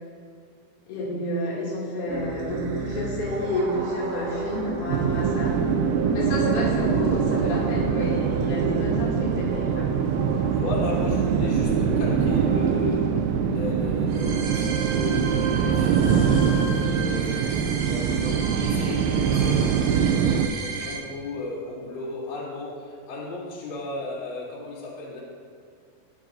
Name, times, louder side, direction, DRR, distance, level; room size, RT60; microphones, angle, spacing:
voice 1, 0.9-5.5 6.1-9.9, left 1 dB, 90° left, -6 dB, 5.2 m, -29 dB
sound 1, 2.1-21.0, right 3 dB, 70° right, 3.3 m, -33 dB
sound 2, 4.9-20.5, right 7 dB, 85° right, 2.7 m, -23 dB
voice 2, 10.5-17.6 17.9-25.2, left 2 dB, 45° left, -7 dB, 3.5 m, -35 dB
20.5 x 7.5 x 2.6 m, 2.2 s
omnidirectional pair, 5.9 m